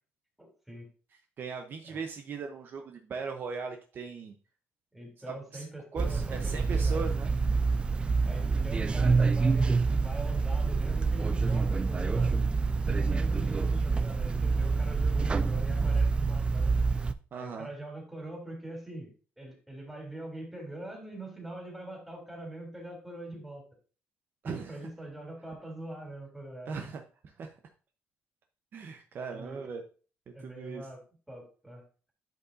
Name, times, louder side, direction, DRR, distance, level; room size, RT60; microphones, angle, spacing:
voice 1, 0.4-0.9 1.9-2.0 4.9-7.0 8.2-12.4 12.9-16.7 17.3-19.1 19.4-23.6 24.4-26.7 29.3-29.6 30.3-31.0 31.3-31.8, right 1 dB, 5° right, 0 dB, 3.2 m, -43 dB
voice 2, 1.4-4.3 5.3-5.6 5.9-7.3 17.3-17.7 24.4-24.8 26.7-27.5 28.7-29.8 30.4-30.9, right 5 dB, 50° right, 4 dB, 0.9 m, -39 dB
sound 1, 6.0-17.1, right 4 dB, 20° right, 0.4 m, -27 dB
10.5 x 5.6 x 2.7 m, 0.37 s
cardioid pair, 105°, 5 cm